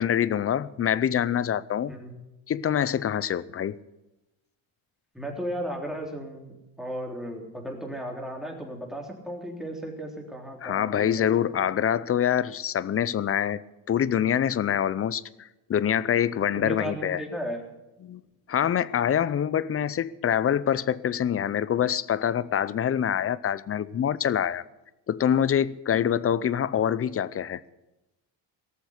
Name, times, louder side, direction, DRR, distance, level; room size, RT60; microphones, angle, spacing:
voice 1, 0.0-1.9 2.5-3.8 10.6-13.6 13.9-17.3 18.0-18.2 18.5-24.6 25.1-27.6, left 9 dB, 30° left, 0.6 m, -25 dB
voice 2, 5.1-11.3 11.6-11.7 16.6-17.6 19.7-19.9 25.9-26.2, equal, ahead, 3.4 m, -35 dB
18.5 x 7.1 x 8.2 m
supercardioid pair, 85°, 49 cm